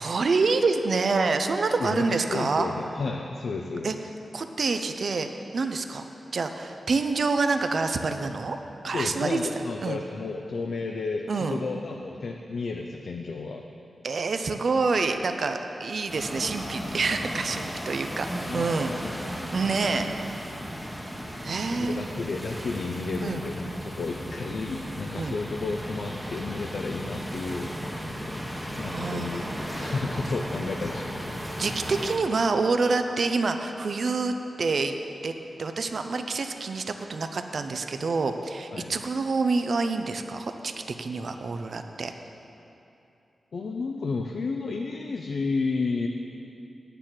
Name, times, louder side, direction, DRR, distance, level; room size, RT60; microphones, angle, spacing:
voice 1, 0.0-2.7 3.8-3.9 4.3-5.3 5.5-6.0 6.3-8.6 8.8-9.4 9.8-10.0 11.3-11.6 14.0-18.9 19.2-20.1 21.4-22.1 23.2-23.4 25.2-25.3 28.9-30.0 31.6-35.0 35.2-35.3 35.6-36.8 37.1-40.7 41.0-42.1, right 4 dB, 60° right, 7 dB, 0.6 m, -27 dB
voice 2, 1.8-3.9 8.8-13.6 18.4-18.7 19.0-19.5 21.6-28.1 28.8-31.2 38.7-39.0 43.5-46.1, left 3 dB, 70° left, 2 dB, 0.6 m, -32 dB
sound 1, 16.1-32.2, equal, ahead, 1.0 m, -35 dB
9.6 x 6.8 x 7.5 m, 2.8 s
wide cardioid pair, 105°, 0 cm